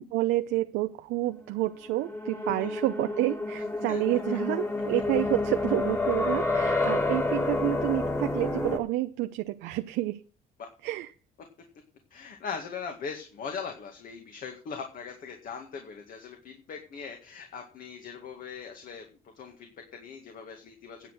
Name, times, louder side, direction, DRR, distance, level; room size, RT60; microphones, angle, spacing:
voice 1, 0.1-10.2 10.8-11.1, right 16 dB, 90° right, 8 dB, 0.7 m, -29 dB
sound 1, 1.5-8.8, left 2 dB, 15° left, 2.1 m, -29 dB
voice 2, 12.1-19.1 19.3-21.1, left 6 dB, 55° left, 4 dB, 2.0 m, -40 dB
10.0 x 7.7 x 6.3 m, 0.38 s
cardioid pair, 110°, 17 cm